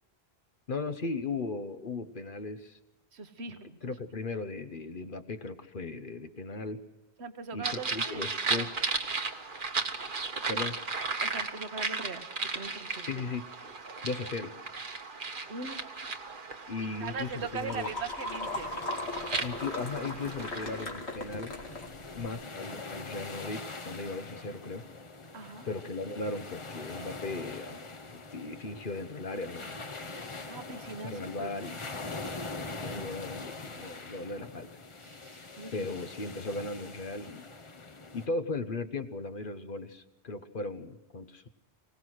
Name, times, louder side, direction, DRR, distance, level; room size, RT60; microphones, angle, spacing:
voice 1, 0.7-2.8 3.8-6.8 7.5-8.7 10.5-10.8 13.0-13.5 14.0-14.6 16.7-17.9 19.4-21.6 22.2-24.9 25.6-30.1 31.0-32.3 32.8-34.7 35.7-37.5 38.1-41.5, left 3 dB, 55° left, 9 dB, 1.2 m, -37 dB
voice 2, 3.1-3.8 7.2-8.7 11.2-13.1 15.5-16.1 16.8-18.7 25.3-25.7 30.5-31.5 35.0-35.9, right 4 dB, 75° right, 9 dB, 1.5 m, -41 dB
sound 1, 7.6-20.8, right 4 dB, 50° right, 1.3 m, -36 dB
sound 2, 17.0-22.3, left 2 dB, 80° left, 2.4 m, -38 dB
sound 3, 18.4-38.3, left 3 dB, 30° left, 0.9 m, -43 dB
25.0 x 18.0 x 6.4 m, 1.0 s
omnidirectional pair, 1.1 m